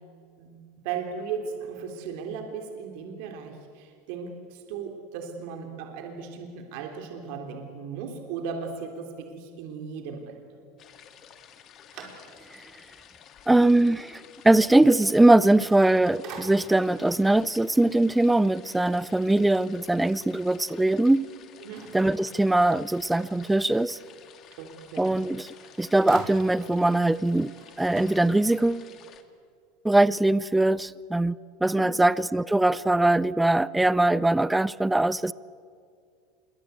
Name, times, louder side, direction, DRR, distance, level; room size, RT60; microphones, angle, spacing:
voice 1, 0.8-10.6 21.6-21.9 24.6-25.0 31.6-31.9, right 6 dB, 65° right, 3.5 m, -36 dB
sound 1, 10.8-29.2, left 9 dB, 40° left, 2.1 m, -52 dB
sound 2, 11.3-12.7 13.2-13.3 15.6-15.9 16.2-17.0 21.7-23.0 25.1-25.2 25.5-26.8 27.2-27.3 27.5-28.8, right 6 dB, 50° right, 4.7 m, -45 dB
voice 2, 13.5-21.3 21.9-24.0 25.0-25.5 25.8-27.5 27.8-28.9 29.8-31.3 31.6-35.3, right 2 dB, 5° right, 0.5 m, -21 dB
26.5 x 22.5 x 8.4 m
supercardioid pair, 130°, 0 cm